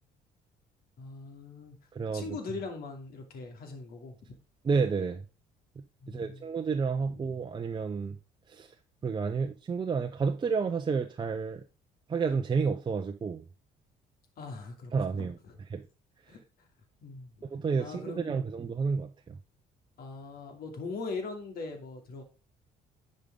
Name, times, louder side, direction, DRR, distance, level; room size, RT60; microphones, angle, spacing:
voice 1, 1.0-1.8 2.1-4.2 6.0-6.4 14.4-14.9 16.3-16.4 17.0-17.5 17.8-18.4 20.0-22.2, left 4 dB, 65° left, 2.6 m, -40 dB
voice 2, 1.9-2.4 4.6-5.2 5.8-8.2 8.5-8.7 9.0-11.6 12.1-13.4 14.9-15.4 15.7-15.8 16.3-16.4 17.4-19.4, right 5 dB, 25° right, 0.7 m, -30 dB
10.5 x 5.3 x 3.7 m
cardioid pair, 110°, 17 cm